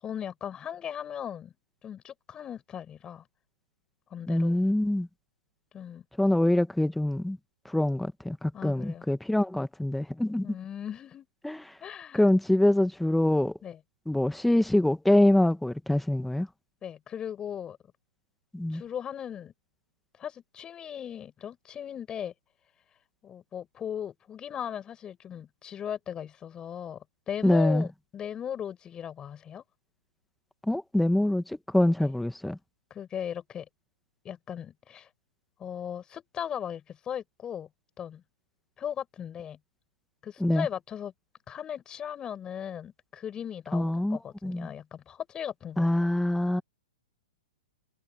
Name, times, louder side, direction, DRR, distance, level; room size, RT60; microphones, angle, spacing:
voice 1, 0.0-1.5 1.8-3.2 4.1-4.6 5.7-6.0 8.5-9.1 10.4-11.3 11.8-12.2 13.6-13.8 16.8-17.8 18.7-19.5 20.2-22.3 23.2-29.6 32.0-32.1 32.9-33.7 34.2-35.1 35.6-37.7 38.0-38.2 38.8-39.6 40.2-41.1 41.5-46.1, left 9 dB, 20° left, 6.1 m, -38 dB
voice 2, 4.3-5.1 6.2-7.4 7.7-10.5 11.4-11.6 12.1-13.5 14.1-16.5 18.5-18.8 27.4-27.8 30.7-32.6 40.4-40.7 43.7-44.7 45.8-46.6, left 1 dB, 5° left, 1.3 m, -25 dB
hypercardioid pair, 140°, 4 cm